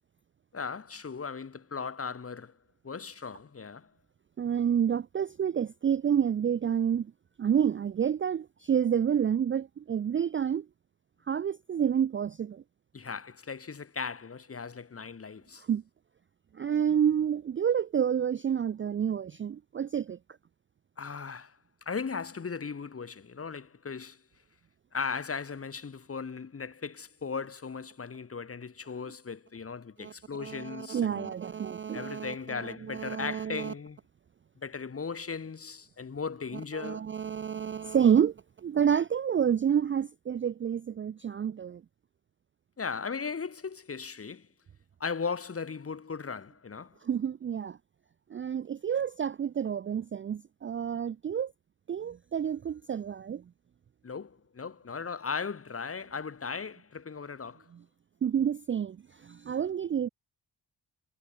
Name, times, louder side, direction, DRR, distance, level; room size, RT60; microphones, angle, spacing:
voice 1, 0.5-2.5 2.8-3.9 12.9-15.6 21.0-21.6 21.8-24.2 24.9-31.3 31.9-34.0 34.6-37.1 42.8-44.5 45.0-47.0 54.0-57.7, left 5 dB, 35° left, 2.8 m, -37 dB
voice 2, 4.4-7.1 7.4-10.7 11.3-12.6 15.6-15.8 16.5-20.2 30.0-30.1 30.4-32.6 32.9-33.7 36.7-38.3 38.6-41.8 47.0-47.8 48.3-51.5 51.9-53.4 58.2-60.1, right 8 dB, 30° right, 0.4 m, -29 dB
wide cardioid pair, 155°, 42 cm